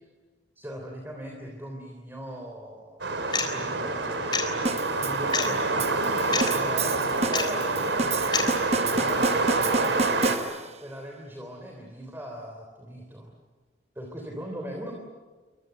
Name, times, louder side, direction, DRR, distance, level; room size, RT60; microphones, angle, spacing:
voice 1, 0.5-3.0 3.4-4.4 5.0-7.9 8.8-13.3 13.9-14.9, equal, 10° right, 1 dB, 3.4 m, -39 dB
sound 1, 3.0-10.4, right 3 dB, 80° right, 4.0 m, -27 dB
sound 2, 3.3-3.5 4.3-4.5 5.3-5.5 6.3-6.5 7.3-7.5 8.3-8.5, left 5 dB, 25° left, 3.8 m, -26 dB
sound 3, 4.6-10.9, right 3 dB, 35° right, 0.9 m, -31 dB
28.5 x 24.0 x 8.2 m, 1.4 s
head